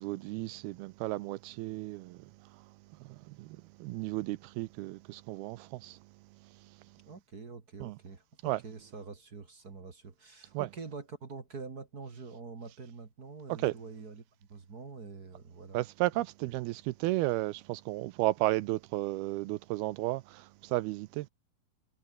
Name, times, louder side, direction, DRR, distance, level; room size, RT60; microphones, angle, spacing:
voice 1, 0.0-2.7 3.0-6.0 7.8-8.0 8.4-8.6 10.5-10.7 13.6-13.7 15.7-21.3, right 18 dB, 80° right, 2.5 m, -33 dB
voice 2, 7.1-14.2 14.5-15.8, right 4 dB, 30° right, 1.9 m, -45 dB
omnidirectional pair, 4.7 m